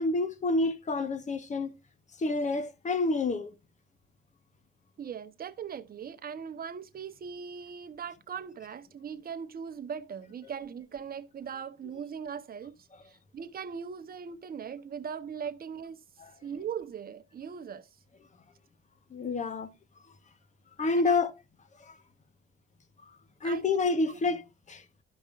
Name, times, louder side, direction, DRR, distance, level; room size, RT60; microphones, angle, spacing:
voice 1, 0.0-1.7 2.2-3.5 19.1-19.7 20.8-21.3 21.9-22.0 23.4-24.4 24.7-24.8, left 3 dB, 40° left, 1.2 m, -28 dB
voice 2, 5.0-12.7 13.0-16.0 16.4-17.9 21.0-21.2 23.4-24.2, right 7 dB, 50° right, 1.0 m, -40 dB
13.0 x 5.3 x 2.5 m
cardioid pair, 90°, 20 cm